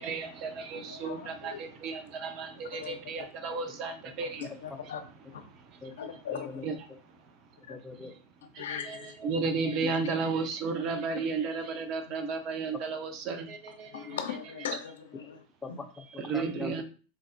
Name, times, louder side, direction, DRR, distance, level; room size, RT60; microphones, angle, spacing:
voice 1, 0.0-4.5 5.5-5.8 6.6-6.7 8.6-14.2 16.3-16.8, right 4 dB, 45° right, 0.7 m, -33 dB
voice 2, 0.7-1.7 2.7-3.3 4.2-5.0 5.3-5.4 6.0-6.5 7.7-7.8 8.6-9.2 13.9-15.4, left 8 dB, 80° left, 0.5 m, -39 dB
voice 3, 6.3-6.7 7.7-8.1 9.8-9.9 11.2-11.3 15.6-16.8, left 4 dB, 10° left, 0.5 m, -41 dB
3.8 x 2.1 x 2.5 m
hypercardioid pair, 110°, 0 cm